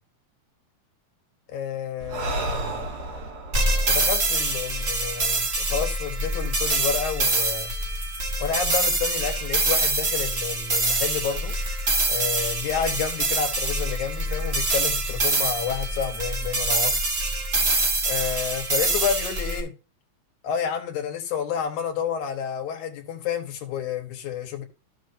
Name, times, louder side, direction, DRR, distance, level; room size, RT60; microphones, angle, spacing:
voice 1, 1.5-2.9 3.9-7.7 8.4-11.5 12.1-17.1 18.1-19.7 20.4-24.6, left 7 dB, 80° left, 2.6 m, -30 dB
Breathing, 2.0-5.5, right 2 dB, 75° right, 3.0 m, -33 dB
sound 1, 3.5-19.6, right 2 dB, 45° right, 0.8 m, -25 dB
13.0 x 6.3 x 2.7 m
omnidirectional pair, 3.5 m